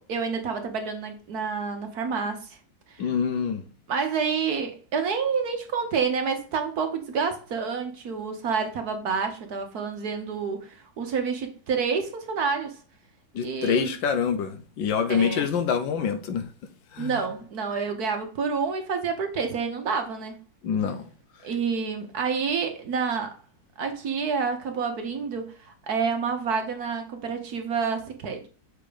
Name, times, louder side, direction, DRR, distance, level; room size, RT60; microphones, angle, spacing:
voice 1, 0.0-2.5 2.9-3.0 3.9-12.8 13.4-14.0 15.1-15.5 17.0-20.4 21.4-23.4 23.8-28.5, right 5 dB, 55° right, 1.4 m, -28 dB
voice 2, 3.0-3.6 13.3-16.5 16.9-17.1 20.6-21.1, left 7 dB, 75° left, 1.5 m, -26 dB
6.7 x 3.8 x 5.0 m
omnidirectional pair, 2.1 m